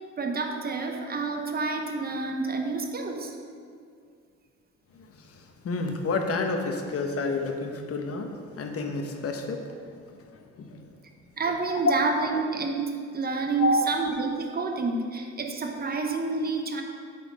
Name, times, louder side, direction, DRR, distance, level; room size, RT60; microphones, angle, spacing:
voice 1, 0.2-3.3 11.4-16.8, right 4 dB, 30° right, 3 dB, 0.9 m, -29 dB
voice 2, 4.9-10.8 13.6-13.8, left 3 dB, 50° left, 4 dB, 1.0 m, -30 dB
8.4 x 4.3 x 5.3 m, 2.2 s
cardioid pair, 90°, 30 cm